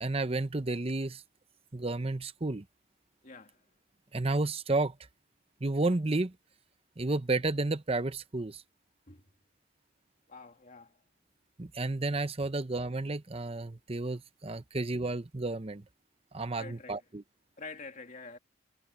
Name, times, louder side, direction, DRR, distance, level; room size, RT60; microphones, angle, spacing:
voice 1, 0.0-1.2 1.7-2.6 4.1-5.0 5.6-6.3 7.0-8.6 11.6-15.8 16.3-17.2, right 2 dB, 30° right, 0.8 m, -31 dB
voice 2, 3.2-3.7 9.1-9.3 10.3-11.0 16.5-17.0 17.6-18.4, left 3 dB, 40° left, 2.5 m, -47 dB
head